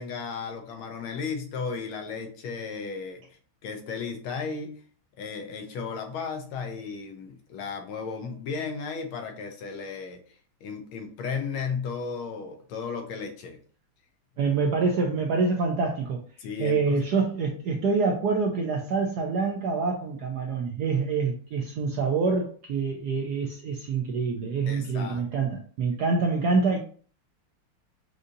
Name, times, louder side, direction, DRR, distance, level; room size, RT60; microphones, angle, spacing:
voice 1, 0.0-3.2 3.6-4.8 5.2-10.2 10.6-13.6 16.4-17.0 24.7-25.3, left 5 dB, 75° left, 5 dB, 1.5 m, -34 dB
voice 2, 14.4-16.2 16.6-26.8, right 4 dB, 75° right, 1 dB, 0.9 m, -26 dB
6.4 x 2.7 x 2.5 m, 0.43 s
omnidirectional pair, 2.3 m